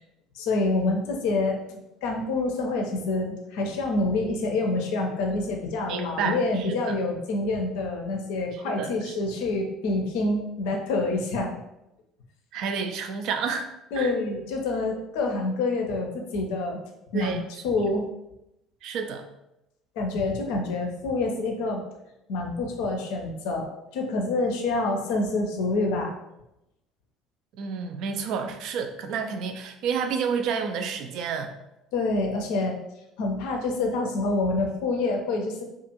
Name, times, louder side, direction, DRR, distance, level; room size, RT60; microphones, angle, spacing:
voice 1, 0.4-11.5 13.9-16.8 17.1-18.1 20.0-21.8 22.3-26.1 31.9-32.8 33.2-35.6, left 2 dB, 65° left, 2 dB, 0.5 m, -27 dB
voice 2, 5.9-6.7 8.8-9.1 12.5-13.7 13.9-14.1 17.1-17.4 18.8-19.2 27.6-31.5, right 6 dB, 55° right, 6 dB, 0.3 m, -30 dB
2.5 x 2.4 x 2.7 m, 0.88 s
figure-of-eight pair, 60°, 0 cm